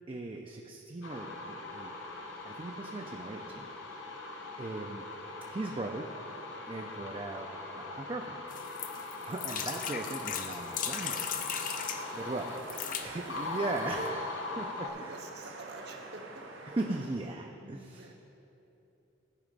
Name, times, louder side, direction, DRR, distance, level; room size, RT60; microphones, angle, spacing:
voice 1, 0.1-1.9 2.4-4.0 4.6-5.1 5.4-6.1 6.7-7.5 7.7-8.4 8.9-11.3 11.6-12.5 13.0-15.3 16.7-18.1, right 2 dB, 25° right, 2 dB, 0.4 m, -38 dB
sound 1, 1.0-14.9, left 3 dB, 85° left, 0.9 m, -41 dB
sound 2, 8.5-12.0 12.6-13.1 13.8-13.9 14.0-14.1, left 8 dB, 45° left, 0.5 m, -37 dB
sound 3, 11.0-17.1, right 2 dB, 90° right, 1.1 m, -46 dB
voice 2, 12.2-13.0 14.7-16.5 17.6-18.1, right 2 dB, 60° right, 3 dB, 0.9 m, -49 dB
13.0 x 4.9 x 5.3 m, 2.9 s
head